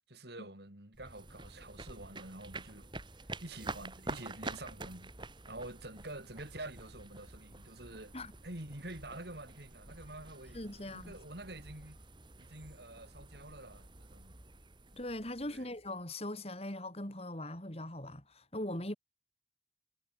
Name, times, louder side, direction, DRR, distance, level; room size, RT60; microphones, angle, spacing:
voice 1, 0.1-2.9 3.4-5.1 5.5-8.2 8.4-12.0 12.4-14.4 15.5-15.8, right 1 dB, 55° right, 4.5 m, -47 dB
sound 1, 0.9-16.1, right 2 dB, 25° right, 2.7 m, -48 dB
voice 2, 10.5-11.1 14.9-18.9, left 1 dB, 30° left, 3.9 m, -40 dB
head